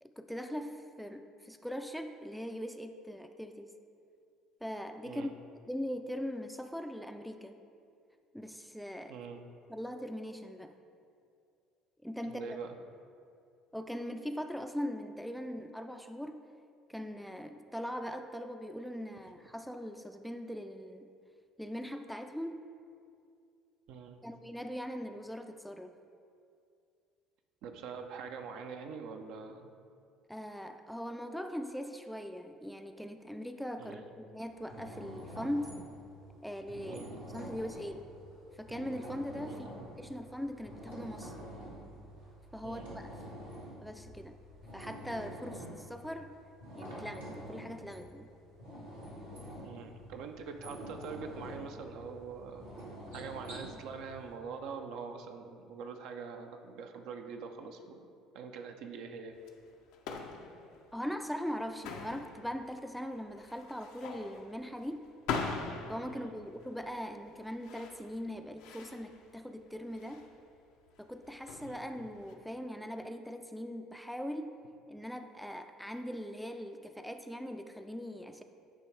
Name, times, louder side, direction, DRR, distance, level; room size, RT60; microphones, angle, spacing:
voice 1, 0.0-3.7 4.6-5.3 5.7-7.5 8.3-9.2 9.7-10.8 12.0-12.6 13.7-16.5 16.9-21.1 21.6-22.7 24.2-25.9 30.3-35.8 36.4-37.0 37.3-38.1 38.5-39.7 40.0-41.4 42.5-43.2 43.8-44.4 44.7-46.4 46.7-48.3 60.9-65.1 65.9-70.3 71.0-78.4, equal, ahead, 7 dB, 0.4 m, -40 dB
voice 2, 9.1-9.4 12.2-12.7 23.9-24.2 27.6-29.7 33.8-34.0 36.9-37.2 39.5-39.7 42.6-43.0 49.6-52.6 53.1-58.1 58.3-59.3 66.1-66.3 71.6-72.1, right 5 dB, 60° right, 5 dB, 0.5 m, -44 dB
sound 1, 34.5-54.3, equal, 80° right, 1.5 m, -47 dB
sound 2, 59.3-72.3, left 5 dB, 65° left, 0.5 m, -43 dB
9.0 x 3.0 x 4.5 m, 2.4 s
figure-of-eight pair, 60°, 0 cm